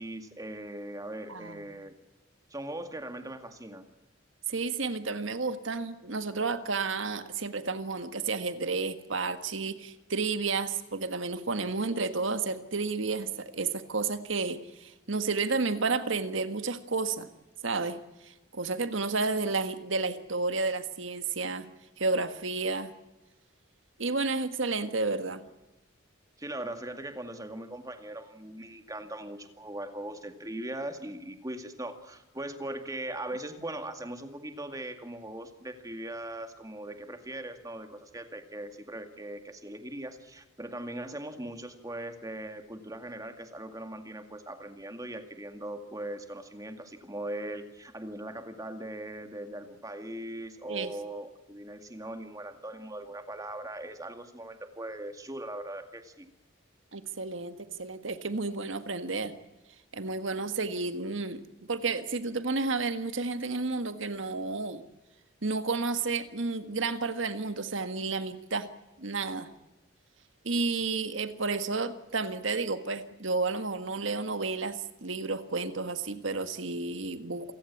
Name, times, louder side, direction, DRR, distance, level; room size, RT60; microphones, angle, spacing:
voice 1, 0.0-1.9 2.5-3.8 26.4-56.3, right 1 dB, 15° right, 7 dB, 2.1 m, -40 dB
voice 2, 1.3-1.6 4.5-17.3 17.6-18.0 18.2-21.7 22.0-22.9 24.0-25.4 50.7-50.9 56.9-59.3 59.9-61.4 61.7-64.8 65.4-68.7 69.0-69.5 70.4-77.5, right 3 dB, 70° right, 10 dB, 1.6 m, -31 dB
28.0 x 16.5 x 8.6 m, 1.0 s
head